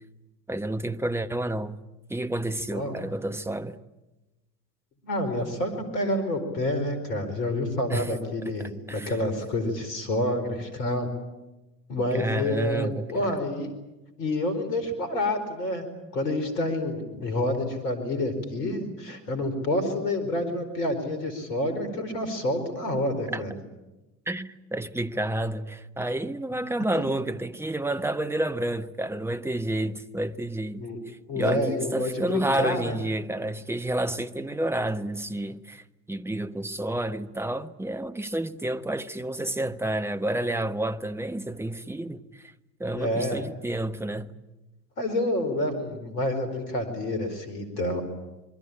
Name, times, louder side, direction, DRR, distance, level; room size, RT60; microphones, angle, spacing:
voice 1, 0.5-1.8 2.1-3.8 7.9-8.1 8.6-9.1 12.1-13.4 23.3-23.4 24.3-42.5 42.8-44.3, right 1 dB, 5° right, 1.2 m, -30 dB
voice 2, 5.0-11.1 11.9-13.7 14.2-15.9 16.1-23.5 26.9-27.0 30.8-31.0 31.3-33.0 42.9-43.4 45.0-48.0, left 1 dB, 75° left, 4.8 m, -28 dB
27.5 x 22.5 x 8.8 m
figure-of-eight pair, 70°, 49 cm